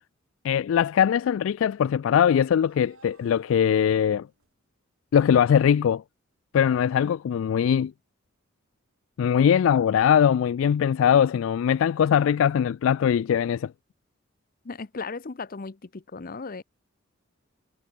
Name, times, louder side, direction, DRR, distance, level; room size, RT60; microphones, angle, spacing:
voice 1, 0.4-4.3 5.1-6.0 6.5-7.9 9.2-13.7, left 8 dB, 70° left, 0.3 m, -21 dB
sound 1, 0.9-4.5, right 3 dB, 80° right, 4.1 m, -58 dB
voice 2, 14.6-16.6, left 4 dB, 45° left, 0.7 m, -36 dB
head